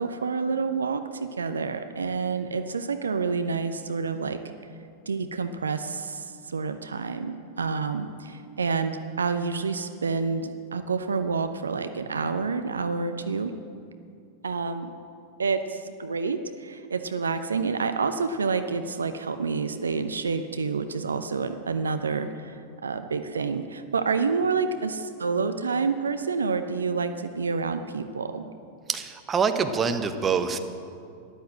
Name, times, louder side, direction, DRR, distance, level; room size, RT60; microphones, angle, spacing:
voice 1, 0.0-4.4 5.1-13.5 14.4-14.9 15.4-28.4, right 4 dB, 75° right, 9 dB, 0.7 m, -28 dB
voice 2, 28.9-30.6, right 6 dB, 20° right, 7 dB, 1.1 m, -25 dB
13.5 x 11.5 x 7.8 m, 2.4 s
figure-of-eight pair, 90°, 0 cm